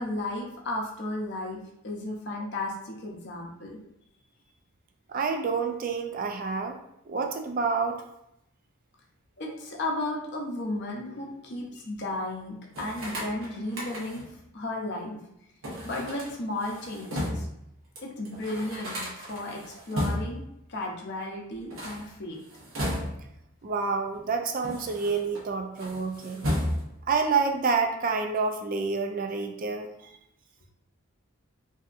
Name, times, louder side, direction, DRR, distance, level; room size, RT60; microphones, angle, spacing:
voice 1, 0.0-1.6 1.8-3.8 9.4-14.2 14.5-15.2 15.8-17.5 18.0-20.4 20.7-22.4, left 2 dB, 50° left, -1 dB, 0.6 m, -34 dB
voice 2, 5.1-6.8 7.1-8.0 23.6-26.5 27.1-30.1, right 4 dB, 40° right, 5 dB, 0.3 m, -28 dB
sound 1, 12.7-14.4 15.6-17.6 18.0-18.1 18.2-20.5 21.6-23.4 24.1-25.4 25.7-27.1, equal, 65° right, 0.9 m, -34 dB
3.5 x 2.7 x 2.4 m, 0.79 s
head